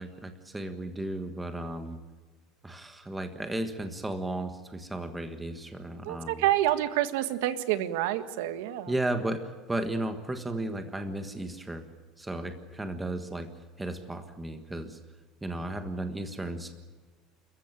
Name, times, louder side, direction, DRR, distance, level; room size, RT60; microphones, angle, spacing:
voice 1, 0.0-2.0 2.6-6.4 8.9-11.8 12.2-13.5 13.8-15.0 15.4-16.7, right 1 dB, 5° right, 7 dB, 1.5 m, -34 dB
voice 2, 6.0-8.9, right 13 dB, 90° right, 10 dB, 1.6 m, -28 dB
29.0 x 14.0 x 9.1 m, 1.4 s
cardioid pair, 180°, 0 cm